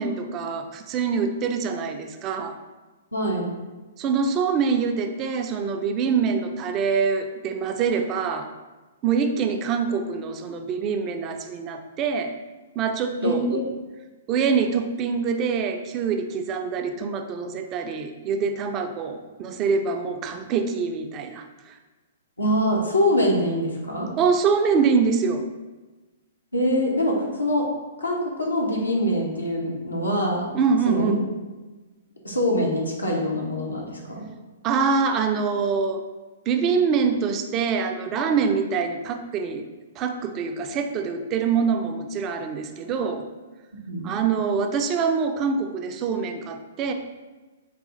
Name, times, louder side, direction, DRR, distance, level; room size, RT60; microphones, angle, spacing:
voice 1, 0.0-2.6 4.0-8.5 9.0-12.4 12.8-13.6 14.3-21.7 24.2-25.4 30.5-31.2 34.6-36.0 36.5-39.6 40.0-43.3 44.0-46.9, right 5 dB, 30° right, 6 dB, 0.3 m, -25 dB
voice 2, 3.1-3.5 13.2-13.6 22.4-24.1 26.5-27.6 28.0-30.5 30.9-31.1 32.2-34.3 43.9-44.1, equal, 85° left, -1 dB, 0.8 m, -24 dB
4.0 x 2.4 x 3.8 m, 1.2 s
figure-of-eight pair, 115°, 0 cm